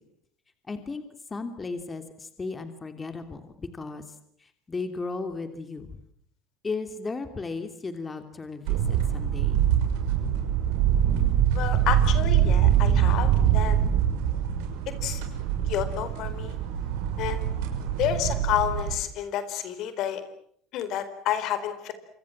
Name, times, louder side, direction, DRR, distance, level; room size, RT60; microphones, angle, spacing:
voice 1, 0.7-1.0 1.3-6.0 6.6-9.6, left 3 dB, 25° left, 8 dB, 3.0 m, -35 dB
sound 1, 8.7-18.9, right 10 dB, 75° right, 6.3 m, -24 dB
voice 2, 11.5-13.8 15.0-15.2 15.7-16.5 17.2-17.5 18.0-20.2 20.7-21.9, left 11 dB, 60° left, 11 dB, 4.3 m, -29 dB
27.5 x 25.0 x 7.5 m, 0.65 s
supercardioid pair, 85°, 0 cm